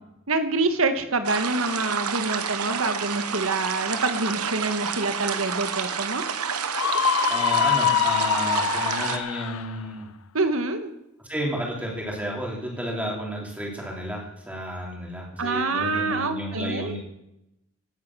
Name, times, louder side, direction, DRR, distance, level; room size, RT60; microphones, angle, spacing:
voice 1, 0.3-6.2 10.3-10.9 15.4-17.0, right 3 dB, 65° right, 8 dB, 1.5 m, -26 dB
sound 1, 1.2-9.2, right 6 dB, 85° right, 1.1 m, -29 dB
Screaming, 6.7-9.7, left 8 dB, 75° left, 0.6 m, -24 dB
voice 2, 7.3-10.1 11.3-17.0, equal, 5° right, -2 dB, 3.4 m, -32 dB
16.5 x 9.4 x 6.2 m, 0.85 s
head